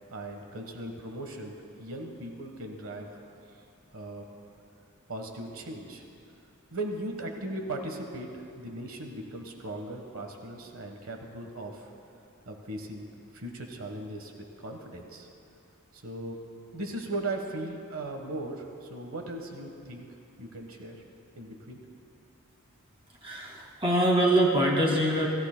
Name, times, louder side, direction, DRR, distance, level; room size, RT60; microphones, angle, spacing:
voice 1, 0.1-3.2 3.9-4.2 5.1-6.0 6.7-11.9 12.5-13.1 13.3-14.3 14.6-15.3 15.9-16.4 16.7-20.1 20.4-21.0 21.3-21.8, right 2 dB, 70° right, 3 dB, 1.3 m, -38 dB
voice 2, 23.2-25.3, right 1 dB, 25° right, -2 dB, 2.2 m, -24 dB
27.0 x 16.0 x 2.2 m, 2.5 s
head